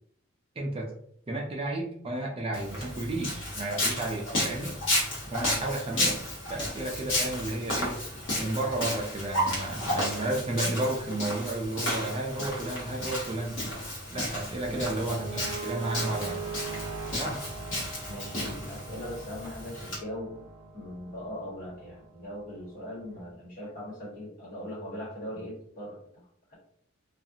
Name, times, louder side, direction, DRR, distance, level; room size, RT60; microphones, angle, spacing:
voice 1, 0.6-0.9 1.3-4.7 5.3-6.2 6.5-8.0 8.4-13.6 14.1-16.4 17.1-17.4, right 2 dB, 25° right, -1 dB, 0.4 m, -32 dB
Walk footsteps, 2.5-20.0, left 1 dB, 65° left, 1.0 m, -33 dB
sound 1, 11.7-14.4 14.7-22.8, right 5 dB, 75° right, 0.6 m, -42 dB
voice 2, 14.7-15.1 18.1-20.5 20.7-26.5, left 1 dB, 40° left, -6 dB, 1.3 m, -40 dB
2.5 x 2.4 x 2.7 m, 0.64 s
head